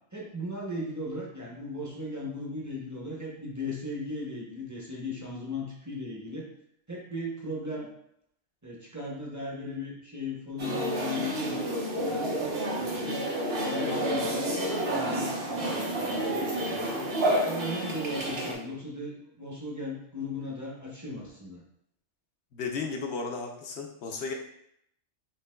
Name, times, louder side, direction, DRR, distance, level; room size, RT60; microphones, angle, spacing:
voice 1, 0.1-6.5 6.9-7.9 8.6-11.6 12.0-13.2 13.6-14.5 14.9-17.1 17.4-21.6, left 1 dB, 15° right, -4 dB, 0.8 m, -37 dB
sound 1, 10.6-18.5, right 1 dB, 55° right, 1.1 m, -30 dB
voice 2, 22.5-24.3, left 4 dB, 65° left, 2 dB, 0.9 m, -34 dB
6.7 x 3.1 x 2.2 m, 0.75 s
omnidirectional pair, 1.3 m